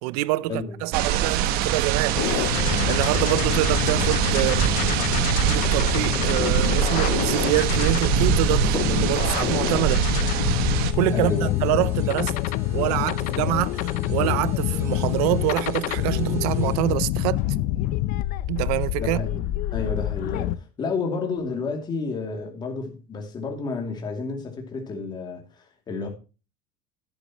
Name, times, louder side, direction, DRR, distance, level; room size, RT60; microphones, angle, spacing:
voice 1, 0.0-2.5 2.8-4.7 5.5-10.0 10.9-12.4 12.7-17.4 18.5-19.2, right 19 dB, 85° right, 0.6 m, -26 dB
sound 1, 0.9-10.9, right 10 dB, 55° right, 1.1 m, -24 dB
sound 2, 2.0-16.9, left 3 dB, 15° right, 7.2 m, -41 dB
sound 3, 2.2-20.6, left 15 dB, 45° left, 0.6 m, -26 dB
voice 2, 11.1-11.6 19.0-19.4 19.7-26.1, left 4 dB, 20° left, 2.6 m, -31 dB
11.0 x 11.0 x 3.0 m
cardioid pair, 165°, 19 cm